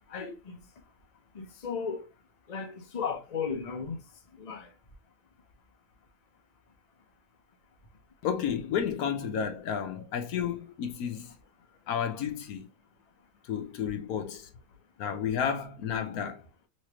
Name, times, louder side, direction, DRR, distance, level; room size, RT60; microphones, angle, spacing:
voice 1, 0.1-0.6 1.3-2.1 2.5-4.0 4.3-4.7, left 6 dB, 35° left, 0.6 m, -35 dB
voice 2, 8.2-11.3 11.9-12.7 13.4-14.5 15.0-16.4, left 8 dB, 70° left, 1.1 m, -31 dB
3.2 x 3.1 x 2.9 m
omnidirectional pair, 1.6 m